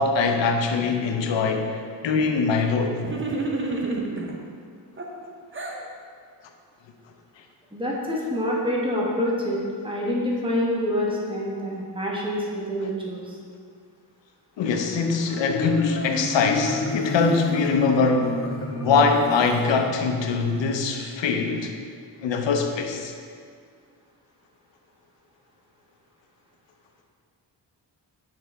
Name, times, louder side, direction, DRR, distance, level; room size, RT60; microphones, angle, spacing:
voice 1, 0.0-3.0 14.6-18.4 18.7-21.7 22.2-23.1, left 4 dB, 85° left, 4 dB, 0.7 m, -23 dB
sound 1, 3.0-4.4 5.0-5.8, right 3 dB, 30° right, 0.8 m, -29 dB
voice 2, 7.7-13.4, equal, 10° right, -4 dB, 1.3 m, -26 dB
Marimba xylophone, 15.3-20.4, left 3 dB, 30° left, 1.0 m, -29 dB
8.1 x 4.1 x 3.4 m, 2.1 s
cardioid pair, 80°, 43 cm